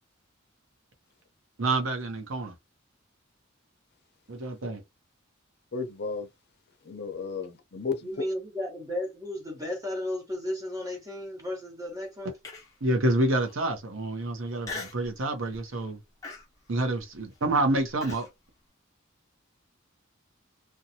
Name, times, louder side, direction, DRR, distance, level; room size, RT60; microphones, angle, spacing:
voice 1, 1.6-2.5 4.3-4.8 12.8-16.0 16.7-18.3, right 2 dB, 70° right, 0.8 m, -28 dB
voice 2, 5.7-6.3 6.9-8.0, left 5 dB, 55° left, 0.6 m, -33 dB
voice 3, 8.0-12.3, left 1 dB, 15° right, 1.1 m, -34 dB
Human voice, 12.4-12.9 13.4-13.5 14.6-15.1 15.5-15.8 16.2-18.3, left 3 dB, 15° left, 0.8 m, -40 dB
2.6 x 2.3 x 2.8 m
head